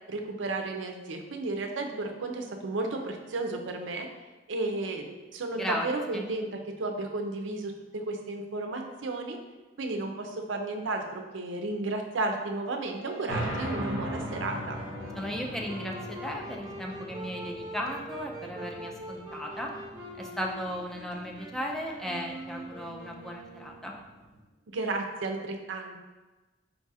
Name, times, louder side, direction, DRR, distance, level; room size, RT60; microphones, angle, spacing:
voice 1, 0.1-4.1 4.5-9.4 9.8-14.8 24.7-26.0, right 2 dB, 70° right, 4 dB, 0.5 m, -33 dB
voice 2, 5.6-5.9 6.1-6.2 15.2-19.7 20.2-23.9, equal, ahead, -1 dB, 0.4 m, -36 dB
Wind instrument woodwind instrument, 12.8-23.9, right 1 dB, 25° right, 1.0 m, -43 dB
sound 1, 13.3-24.4, equal, 40° left, 1.2 m, -40 dB
4.5 x 2.4 x 4.0 m, 1.2 s
head